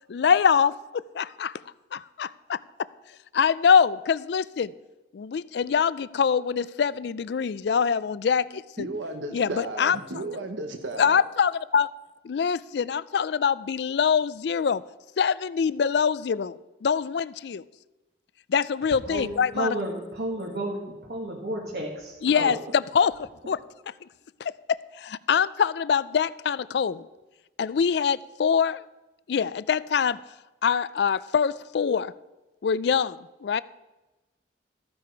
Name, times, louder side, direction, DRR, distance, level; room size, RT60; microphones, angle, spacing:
voice 1, 0.1-1.5 1.9-2.6 3.3-4.7 5.1-8.9 9.3-10.2 11.0-11.9 12.2-14.8 15.2-17.6 18.5-19.7 22.2-23.6 24.4-27.1 27.6-28.8 29.3-30.2 30.6-32.1 32.6-33.6, left 6 dB, 65° left, 18 dB, 0.4 m, -24 dB
voice 2, 8.8-11.2, right 2 dB, 90° right, 5 dB, 1.1 m, -34 dB
voice 3, 19.1-22.6 23.5-23.6, right 1 dB, 60° right, -2 dB, 1.8 m, -32 dB
14.0 x 9.7 x 4.5 m, 1.1 s
head